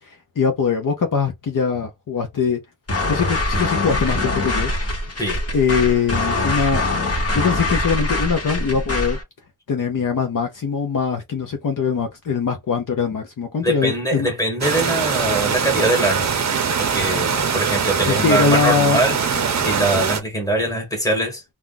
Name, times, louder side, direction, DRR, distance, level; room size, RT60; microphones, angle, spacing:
voice 1, 0.1-2.6 3.1-4.7 5.5-6.8 7.3-9.2 9.7-14.3 18.1-19.0 19.5-19.7, left 6 dB, 60° left, 0.7 m, -22 dB
sound 1, 2.9-9.2, left 2 dB, 40° left, 1.2 m, -23 dB
voice 2, 13.6-16.3 16.8-19.1 19.6-21.4, right 1 dB, 10° left, 1.3 m, -22 dB
sound 2, 14.6-20.2, right 6 dB, 50° right, 0.6 m, -22 dB
2.4 x 2.2 x 3.8 m
wide cardioid pair, 140°, 37 cm